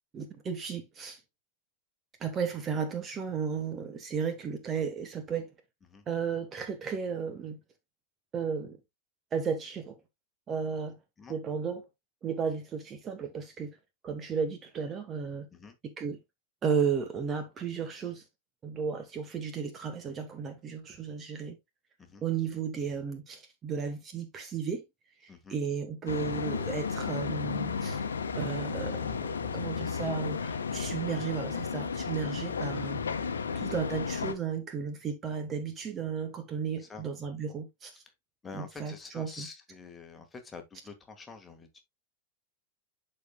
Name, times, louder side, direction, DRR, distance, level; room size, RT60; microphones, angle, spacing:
voice 1, 0.1-1.2 2.2-5.5 6.1-7.6 8.3-8.8 9.3-9.9 10.5-11.0 11.3-11.9 12.2-13.8 14.0-15.5 15.8-16.2 16.6-18.2 18.6-21.6 22.2-24.8 25.2-28.0 28.3-33.0 33.5-38.0 38.5-39.5, right 6 dB, 25° right, 1.2 m, -34 dB
sound 1, 26.1-34.3, left 5 dB, 70° left, 1.0 m, -33 dB
voice 2, 38.4-41.8, left 4 dB, 15° left, 1.7 m, -47 dB
12.0 x 4.4 x 2.3 m
figure-of-eight pair, 90°, 0 cm